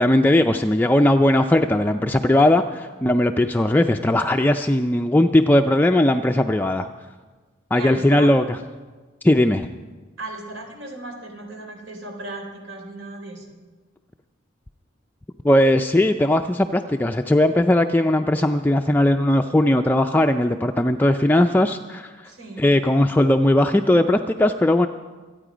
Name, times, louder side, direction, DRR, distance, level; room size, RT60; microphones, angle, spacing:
voice 1, 0.0-6.9 7.7-8.6 9.2-9.7 15.4-22.1 22.6-24.9, left 1 dB, 10° left, 5 dB, 0.4 m, -18 dB
voice 2, 7.7-8.3 10.2-13.6 22.2-22.7, right 2 dB, 80° right, 2 dB, 3.4 m, -36 dB
25.0 x 9.2 x 5.0 m, 1.3 s
head